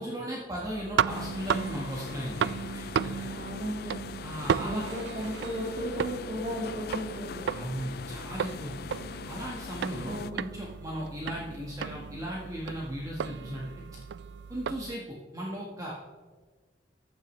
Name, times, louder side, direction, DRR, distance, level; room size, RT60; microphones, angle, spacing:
voice 1, 0.0-3.3 4.2-4.8 7.5-8.9 9.2-13.7 14.5-16.0, equal, 20° right, -3 dB, 1.5 m, -37 dB
sound 1, 0.6-15.0, right 7 dB, 70° right, 0.3 m, -35 dB
sound 2, 1.1-10.3, left 6 dB, 60° left, 0.4 m, -42 dB
voice 2, 3.3-3.9 4.6-7.4 10.0-10.4, equal, 40° right, -4 dB, 2.1 m, -35 dB
14.5 x 9.2 x 3.2 m, 1.4 s
head